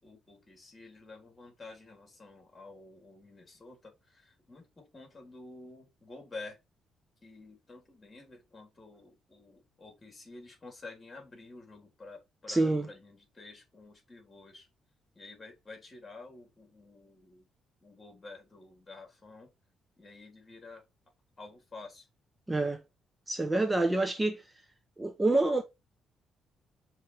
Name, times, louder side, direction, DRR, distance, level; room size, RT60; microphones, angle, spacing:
voice 1, 0.0-6.6 7.2-14.7 15.2-17.5 17.8-19.5 20.0-20.8 21.4-22.1, left 3 dB, 25° left, 3.6 m, -50 dB
voice 2, 12.5-12.9 22.5-22.8 23.3-24.4 25.0-25.6, right 2 dB, 15° right, 0.8 m, -27 dB
6.4 x 3.2 x 4.7 m
cardioid pair, 90°, 0 cm